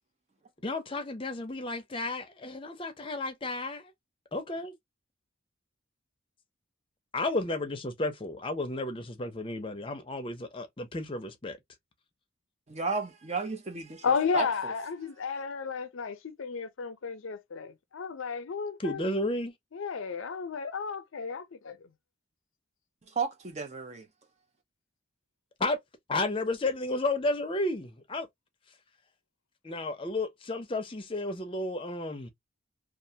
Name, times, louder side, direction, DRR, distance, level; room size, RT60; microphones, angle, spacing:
voice 1, 0.6-3.9 4.3-4.8 7.1-11.6 18.8-19.5 25.6-25.8 26.1-28.3 29.6-32.3, left 2 dB, 25° left, 0.5 m, -32 dB
voice 2, 12.7-14.0 14.3-14.7 15.2-15.4 23.2-24.1, right 4 dB, 35° right, 0.5 m, -33 dB
voice 3, 14.0-19.0 19.7-21.9, left 5 dB, 75° left, 0.5 m, -33 dB
2.4 x 2.2 x 2.7 m
head